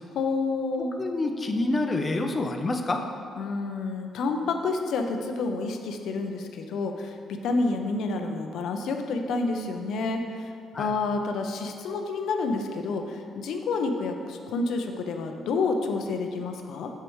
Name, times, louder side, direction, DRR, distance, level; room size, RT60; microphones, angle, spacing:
voice 1, 0.1-0.9 3.4-10.5 10.8-16.9, left 3 dB, 75° left, 5 dB, 0.6 m, -29 dB
voice 2, 1.0-3.0 10.7-10.9, left 2 dB, 30° left, 4 dB, 0.6 m, -27 dB
7.9 x 6.7 x 3.1 m, 2.3 s
cardioid pair, 90°, 0 cm